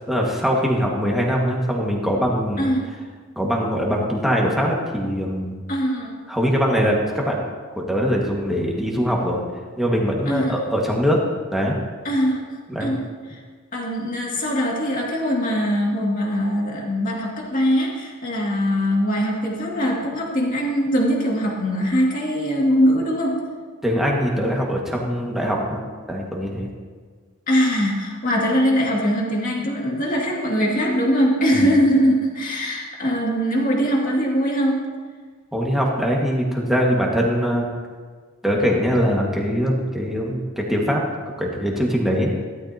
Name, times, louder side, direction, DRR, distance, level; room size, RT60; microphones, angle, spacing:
voice 1, 0.1-2.6 3.4-5.6 6.3-7.4 7.8-9.4 9.8-11.2 11.5-11.8 12.7-12.9 23.8-25.8 26.1-26.7 31.5-31.7 35.5-37.7 38.4-41.0 41.4-42.3, equal, ahead, -3 dB, 1.7 m, -22 dB
voice 2, 5.7-6.2 10.3-10.5 12.0-12.4 12.8-13.0 13.3-13.4 13.7-23.4 27.5-34.8, equal, 40° left, -2 dB, 2.3 m, -21 dB
15.5 x 12.5 x 2.9 m, 1.5 s
head